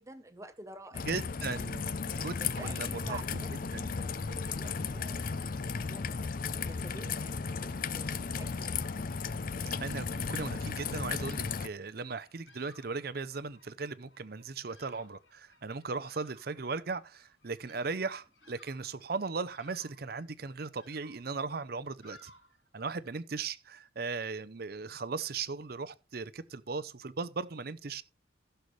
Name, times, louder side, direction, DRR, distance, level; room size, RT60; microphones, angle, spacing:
voice 1, 0.0-1.1 1.6-1.8 2.1-3.7 4.0-8.8, right 1 dB, 15° right, 0.8 m, -50 dB
Raindrop / Trickle dribble, 0.9-11.7, left 5 dB, 45° left, 0.5 m, -35 dB
voice 2, 1.1-3.4 3.7-3.9 9.8-22.3 22.7-28.0, right 4 dB, 50° right, 0.6 m, -37 dB
Bird vocalization bird call bird song, 12.1-23.1, left 1 dB, 75° left, 4.8 m, -61 dB
15.5 x 6.8 x 3.2 m
head